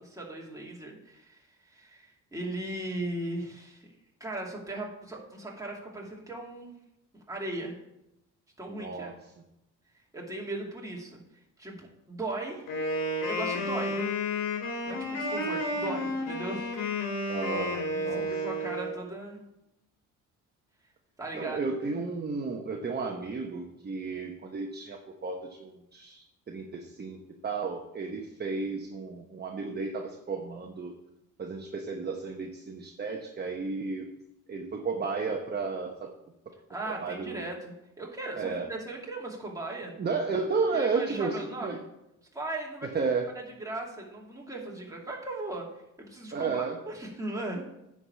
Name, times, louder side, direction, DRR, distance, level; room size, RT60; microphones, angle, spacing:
voice 1, 0.0-3.9 4.2-6.7 7.1-7.8 8.6-9.1 10.1-11.2 11.6-12.7 13.2-14.0 14.8-16.7 17.2-17.4 17.9-19.5 21.2-21.6 36.7-39.9 40.7-41.9 42.3-42.9 43.6-45.7 46.0-47.6, right 2 dB, 10° right, -2 dB, 2.6 m, -38 dB
voice 2, 8.7-9.2 17.3-18.3 21.3-30.9 31.4-34.1 34.5-36.1 36.9-37.4 38.3-38.7 40.0-41.8 42.9-43.3 46.3-46.8, right 4 dB, 30° right, 2 dB, 1.0 m, -33 dB
Wind instrument woodwind instrument, 12.7-18.9, left 1 dB, 85° left, 2.8 m, -31 dB
9.6 x 4.9 x 7.0 m, 0.86 s
cardioid pair, 100°, 32 cm